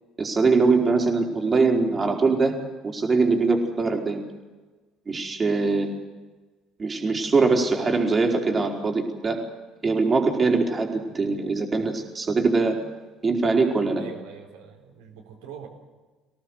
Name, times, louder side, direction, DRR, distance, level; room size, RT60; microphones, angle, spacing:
voice 1, 0.2-2.6 2.8-4.2 5.1-6.0 6.8-9.4 9.8-12.8 13.2-14.0, right 3 dB, 30° right, 2 dB, 4.7 m, -22 dB
voice 2, 13.9-15.7, right 7 dB, 70° right, 0 dB, 4.2 m, -43 dB
25.0 x 18.0 x 8.2 m, 1.2 s
figure-of-eight pair, 55°, 0 cm